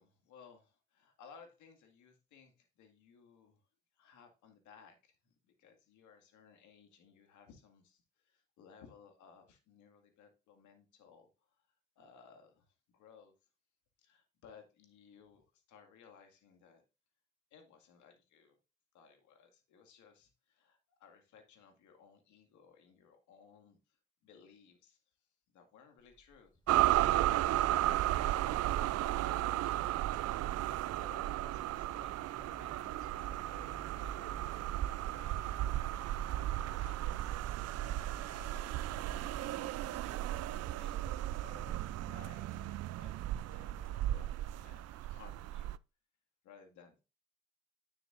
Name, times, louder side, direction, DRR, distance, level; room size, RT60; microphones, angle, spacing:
voice 1, 0.0-3.6 3.9-11.7 12.0-13.3 14.0-16.8 17.5-18.6 18.9-26.5 27.0-33.5 33.8-35.8 36.1-43.1 43.5-45.7 46.4-47.0, left 6 dB, 75° left, 5 dB, 2.1 m, -61 dB
Bird, 26.0-43.9, left 1 dB, 15° left, 4.1 m, -67 dB
sound 1, 26.7-45.8, right 14 dB, 60° right, 0.4 m, -34 dB
sound 2, 31.9-44.1, left 4 dB, 60° left, 1.7 m, -58 dB
9.7 x 6.9 x 2.5 m, 0.29 s
supercardioid pair, 55°, 30 cm